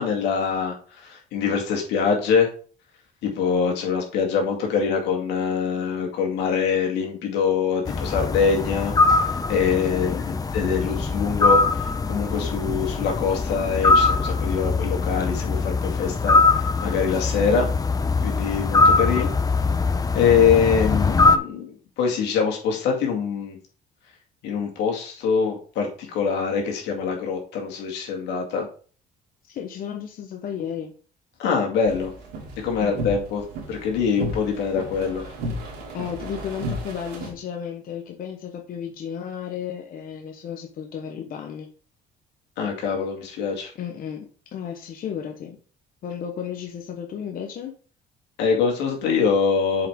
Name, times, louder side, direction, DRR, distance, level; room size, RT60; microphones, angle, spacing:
voice 1, 0.0-2.5 3.2-17.7 18.2-19.3 20.1-23.6 24.4-28.7 31.4-32.1 32.6-35.2 42.6-43.7 48.4-49.9, left 6 dB, 85° left, 1 dB, 2.2 m, -24 dB
sound 1, 7.8-21.4, left 3 dB, 20° left, 0.7 m, -22 dB
voice 2, 9.9-10.3 18.8-19.3 29.4-30.9 32.8-33.2 35.2-35.3 35.9-41.7 43.8-45.6 46.0-47.7, left 8 dB, 55° left, 3 dB, 1.0 m, -33 dB
sound 2, 31.9-37.3, equal, 90° right, 2.8 m, -34 dB
7.6 x 5.0 x 3.6 m, 0.42 s
cardioid pair, 110°, 17 cm